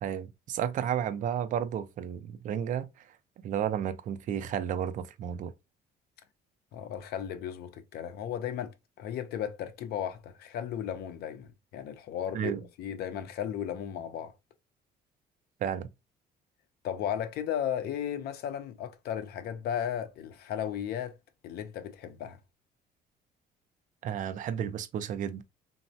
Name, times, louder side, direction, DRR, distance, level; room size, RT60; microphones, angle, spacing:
voice 1, 0.0-3.1 3.4-5.5 12.3-12.6 15.6-15.9 24.0-25.4, right 9 dB, 50° right, 0.4 m, -32 dB
voice 2, 6.7-12.5 12.8-14.3 16.8-21.1 21.4-22.4, left 9 dB, 70° left, 0.5 m, -35 dB
3.2 x 2.0 x 2.6 m
cardioid pair, 110°, 17 cm